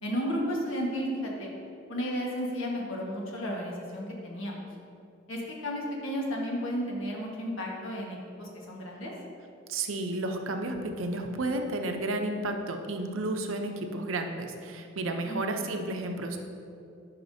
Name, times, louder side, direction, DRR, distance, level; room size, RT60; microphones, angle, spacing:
voice 1, 0.0-1.5 1.9-4.6 5.3-9.1 15.2-15.6, equal, 85° left, -2 dB, 1.5 m, -33 dB
voice 2, 9.7-16.4, right 2 dB, 85° right, 5 dB, 0.7 m, -32 dB
11.0 x 5.9 x 2.7 m, 2.6 s
head